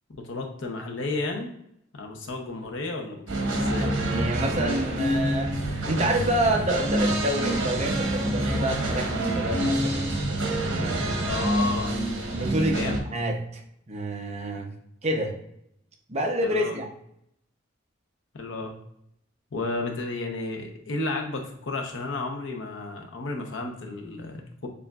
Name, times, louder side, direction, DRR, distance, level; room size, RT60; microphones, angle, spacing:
voice 1, 0.2-1.5 1.9-3.9 11.2-11.9 12.7-13.0 16.4-16.8 18.3-18.7 19.5-24.7, left 2 dB, 75° left, 2 dB, 0.8 m, -32 dB
sound 1, 3.3-13.0, right 1 dB, 80° right, 1.0 m, -27 dB
voice 2, 3.7-5.5 5.9-10.1 10.7-11.4 12.3-13.6 13.9-14.7 15.0-15.4 16.1-16.9, right 1 dB, 35° right, 1 dB, 0.7 m, -28 dB
6.8 x 2.5 x 2.4 m, 0.74 s
head